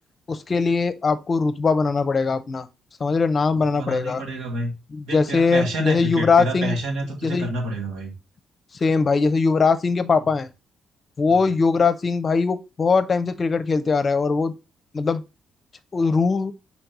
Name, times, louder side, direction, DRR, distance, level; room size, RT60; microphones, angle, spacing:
voice 1, 0.3-2.7 3.0-4.2 4.9-6.8 7.2-7.5 8.8-10.5 11.2-14.5 14.9-15.2 15.9-16.5, left 4 dB, 40° left, 0.7 m, -21 dB
voice 2, 3.5-4.7 5.0-8.1 11.3-11.4, right 1 dB, 85° right, 2.5 m, -29 dB
4.5 x 4.2 x 5.3 m
cardioid pair, 90°, 0 cm